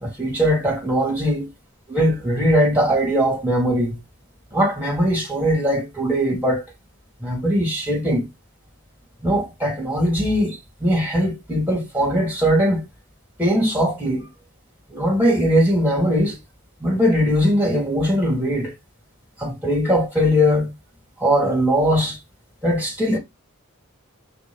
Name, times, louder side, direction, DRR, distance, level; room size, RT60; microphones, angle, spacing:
voice 1, 0.0-1.5 1.9-4.0 4.5-6.6 7.2-8.3 9.2-12.8 13.4-14.3 14.9-16.4 16.8-18.7 19.4-20.7 21.2-22.2 22.6-23.2, equal, 10° right, 2.2 m, -20 dB
5.2 x 2.6 x 3.5 m
head